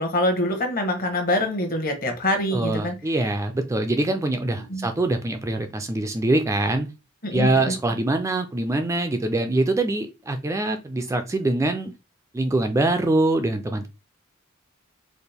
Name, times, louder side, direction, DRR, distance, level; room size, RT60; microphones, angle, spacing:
voice 1, 0.0-3.0 4.7-4.9 7.2-7.7, left 1 dB, 45° left, 1.0 m, -25 dB
voice 2, 2.5-6.9 7.3-11.9 12.3-13.9, right 2 dB, 15° right, 0.3 m, -24 dB
4.2 x 2.4 x 3.3 m
head